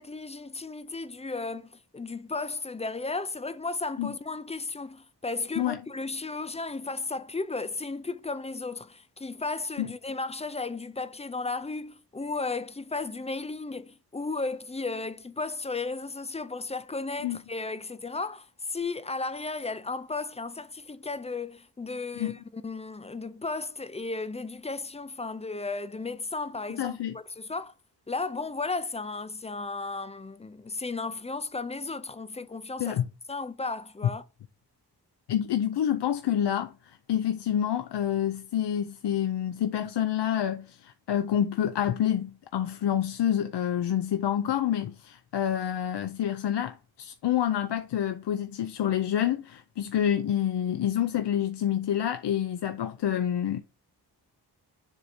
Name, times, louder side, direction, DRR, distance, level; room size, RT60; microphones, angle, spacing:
voice 1, 0.0-27.7 28.1-33.0 33.3-34.2, left 3 dB, 15° left, 0.3 m, -34 dB
voice 2, 26.8-27.2 32.8-33.1 35.3-53.6, left 10 dB, 75° left, 0.6 m, -28 dB
7.4 x 2.7 x 4.9 m
wide cardioid pair, 170°, 41 cm